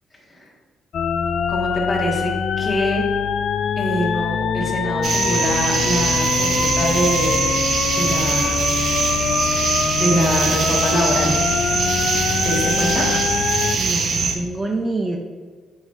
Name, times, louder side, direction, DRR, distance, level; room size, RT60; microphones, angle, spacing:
sound 1, 0.9-13.8, left 7 dB, 60° left, 0.3 m, -23 dB
voice 1, 1.5-3.0 3.8-7.5 7.9-8.7 10.0-11.4 12.4-13.0, equal, 20° left, -2 dB, 1.9 m, -24 dB
sound 2, 5.0-14.3, right 4 dB, 60° right, 0.9 m, -22 dB
voice 2, 13.8-15.2, right 2 dB, 25° right, 2 dB, 0.7 m, -26 dB
7.7 x 5.6 x 2.7 m, 1.5 s
cardioid pair, 90°, 0 cm